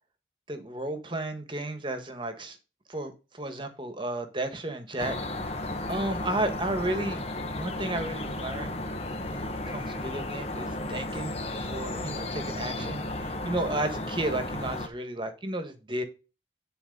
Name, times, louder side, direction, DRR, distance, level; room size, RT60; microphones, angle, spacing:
voice 1, 0.5-2.6 2.9-7.2 7.5-8.8 9.2-16.0, right 1 dB, 30° right, 7 dB, 1.5 m, -33 dB
sound 1, 5.0-14.9, left 2 dB, 35° left, 1.2 m, -34 dB
10.5 x 4.5 x 5.3 m, 0.31 s
head